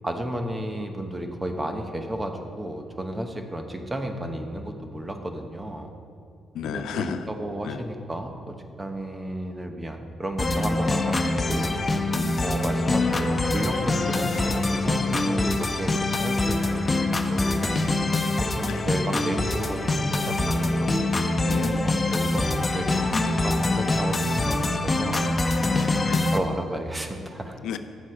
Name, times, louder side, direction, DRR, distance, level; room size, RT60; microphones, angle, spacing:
voice 1, 0.0-5.9 6.7-11.2 11.5-11.7 12.4-17.8 18.4-21.1 21.8-23.1 23.4-25.3 26.3-27.6, right 1 dB, 20° right, 5 dB, 1.0 m, -32 dB
voice 2, 6.5-7.3 7.6-7.8 12.1-12.4 18.7-18.8 21.4-21.9 25.7-26.2 27.6-27.8, left 7 dB, 80° left, 9 dB, 0.5 m, -32 dB
sound 1, 10.4-26.4, left 2 dB, 25° left, 0.8 m, -24 dB
10.0 x 7.4 x 4.9 m, 2.5 s
cardioid pair, 90°, 0 cm